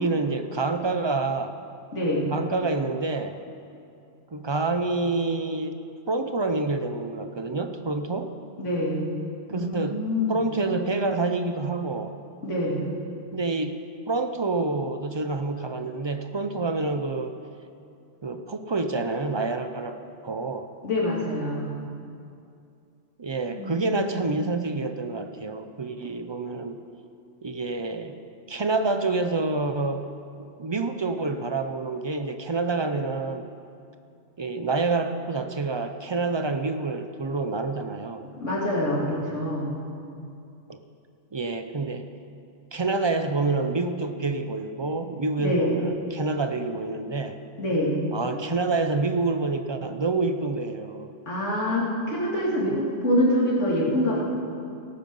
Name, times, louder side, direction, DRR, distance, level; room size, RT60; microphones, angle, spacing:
voice 1, 0.0-1.6 2.3-3.4 4.3-5.8 6.1-8.3 9.5-10.0 10.3-12.2 13.3-13.8 14.1-17.3 18.2-20.7 23.2-26.8 27.4-28.2 28.5-30.1 30.4-33.5 34.4-38.3 40.7-40.8 41.3-42.1 42.7-47.4 48.1-51.1, right 3 dB, 30° right, 8 dB, 0.5 m, -27 dB
voice 2, 1.9-2.3 8.6-9.1 9.5-10.4 12.4-12.9 20.8-21.8 23.5-24.1 24.4-24.5 38.4-39.7 45.4-45.7 47.6-48.0 51.3-54.2, left 1 dB, 85° left, -5 dB, 3.0 m, -25 dB
17.5 x 9.2 x 5.4 m, 2.5 s
omnidirectional pair, 1.2 m